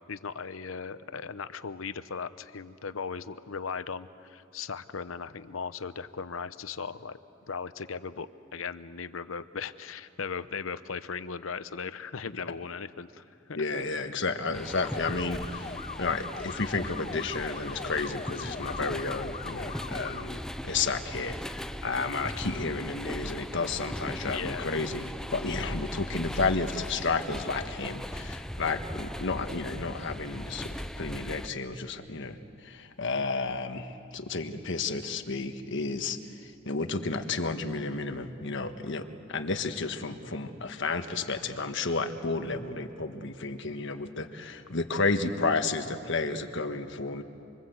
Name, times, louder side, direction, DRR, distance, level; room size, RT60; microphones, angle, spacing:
voice 1, 0.1-7.2 7.5-13.2 24.3-24.7, left 5 dB, 85° left, 13 dB, 0.8 m, -37 dB
voice 2, 13.6-47.2, left 3 dB, 65° left, 7 dB, 1.4 m, -32 dB
sound 1, 14.5-31.5, equal, 5° left, 0.6 m, -38 dB
sound 2, 14.8-20.2, left 5 dB, 35° left, 0.9 m, -41 dB
26.5 x 25.0 x 8.1 m, 2.6 s
head